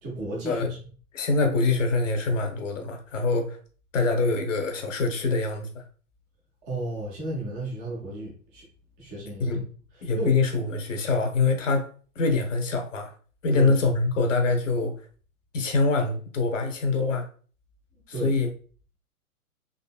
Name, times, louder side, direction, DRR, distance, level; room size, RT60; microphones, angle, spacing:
voice 1, 0.0-0.8 6.7-8.6 9.0-9.5 9.9-10.4 13.5-13.8 18.1-18.4, right 2 dB, 10° right, -4 dB, 0.4 m, -33 dB
voice 2, 1.1-3.6 3.9-5.8 9.4-9.6 10.0-11.9 12.2-13.1 13.4-14.9 15.5-17.3 18.2-18.5, left 3 dB, 55° left, 4 dB, 1.0 m, -24 dB
4.0 x 3.3 x 2.3 m, 0.41 s
figure-of-eight pair, 110°, 44 cm